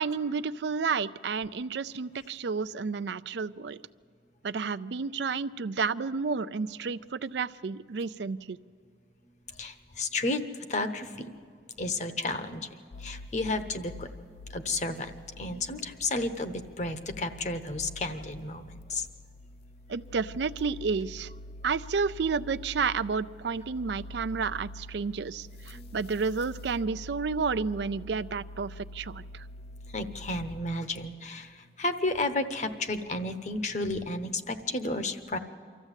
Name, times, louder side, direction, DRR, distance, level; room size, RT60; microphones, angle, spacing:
voice 1, 0.0-3.8 4.4-8.6 19.9-21.3 21.6-29.4, right 5 dB, 70° right, 14 dB, 0.5 m, -31 dB
voice 2, 9.6-11.3 11.8-14.1 14.5-19.1 25.7-25.8 29.9-35.4, left 2 dB, 40° left, 9 dB, 1.0 m, -32 dB
sound 1, 12.9-30.6, left 1 dB, 60° left, 0.6 m, -45 dB
24.5 x 14.0 x 8.2 m, 2.3 s
head